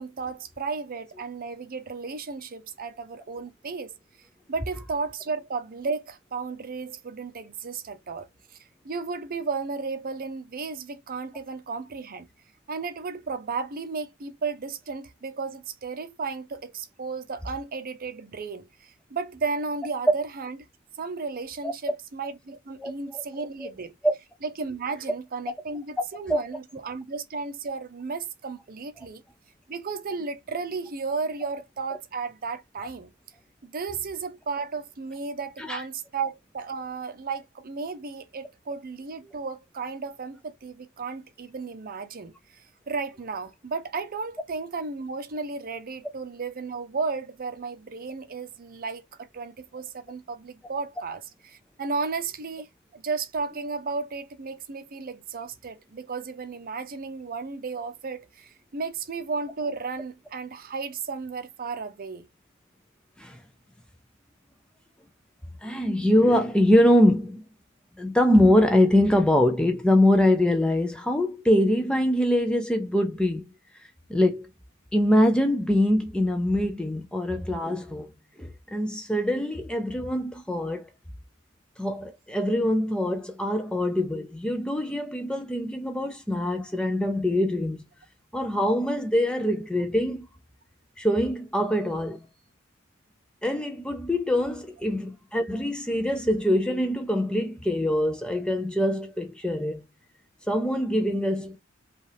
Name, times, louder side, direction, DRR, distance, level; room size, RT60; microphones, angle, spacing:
voice 1, 0.0-3.9 4.5-8.6 8.8-12.3 12.7-20.6 21.0-23.9 24.4-29.2 29.7-33.1 33.6-62.3, right 4 dB, 45° right, 0.6 m, -34 dB
voice 2, 22.8-23.2 23.6-23.7 24.0-24.1 26.3-26.4 35.6-35.8 63.2-63.4 65.6-67.4 68.0-73.5 74.1-74.5 74.9-78.1 78.4-80.9 81.8-87.8 88.3-90.2 91.0-92.2 93.4-99.8 100.5-101.6, left 1 dB, 5° left, 0.4 m, -23 dB
5.3 x 2.4 x 3.3 m
head